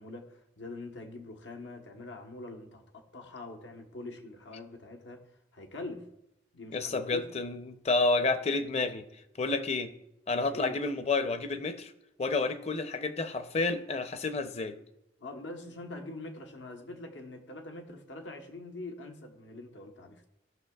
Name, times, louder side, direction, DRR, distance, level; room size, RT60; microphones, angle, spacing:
voice 1, 0.0-5.2 5.5-6.1 6.5-7.3 10.5-10.8 15.2-20.3, left 2 dB, 90° left, 4 dB, 1.2 m, -44 dB
voice 2, 6.7-9.1 9.4-9.9 10.3-11.9 12.2-14.8, left 3 dB, 35° left, 10 dB, 0.6 m, -30 dB
16.0 x 6.0 x 2.3 m, 0.85 s
head